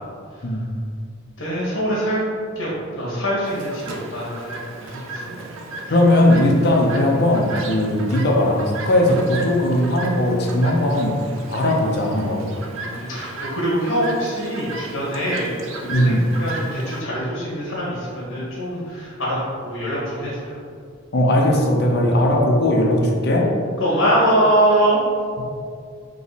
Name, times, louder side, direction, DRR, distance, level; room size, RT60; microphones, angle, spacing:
voice 1, 1.4-2.2 2.5-5.4 5.8-6.3 11.3-11.5 12.6-20.6 23.8-25.0, right 1 dB, 75° left, -7 dB, 1.2 m, -23 dB
Chirp tweet, 3.4-17.0, right 2 dB, 80° right, 0.5 m, -35 dB
voice 2, 5.9-11.1 11.5-12.4 15.9-16.2 21.1-23.5 25.4-25.5, left 1 dB, 55° left, -1 dB, 0.7 m, -18 dB
3.7 x 3.0 x 4.0 m, 2.2 s
head